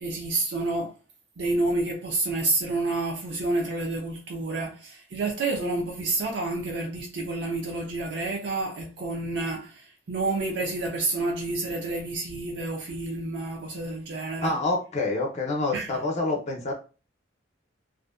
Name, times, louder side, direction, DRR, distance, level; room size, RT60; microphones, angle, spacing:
voice 1, 0.0-0.9 1.4-14.5 15.7-16.0, right 2 dB, 60° right, 0.5 m, -29 dB
voice 2, 14.4-16.7, left 2 dB, 35° left, 0.6 m, -27 dB
2.5 x 2.1 x 2.3 m
head